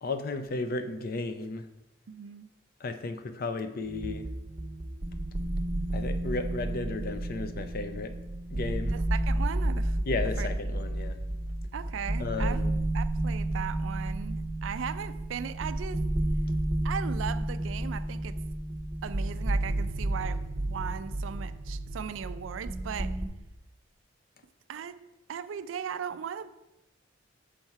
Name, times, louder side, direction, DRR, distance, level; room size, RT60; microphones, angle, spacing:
voice 1, 0.0-1.7 2.8-4.3 5.9-8.1 8.5-9.0 10.1-11.2 12.2-12.7, left 3 dB, 50° left, 0.5 m, -34 dB
voice 2, 2.1-2.5 8.9-10.0 10.4-10.5 11.7-12.7 12.9-16.1 16.8-18.4 19.0-23.2 24.7-25.0 25.3-26.5, right 7 dB, 85° right, 0.4 m, -37 dB
sound 1, 3.8-23.3, right 1 dB, 25° right, 0.5 m, -31 dB
6.5 x 4.3 x 4.6 m
head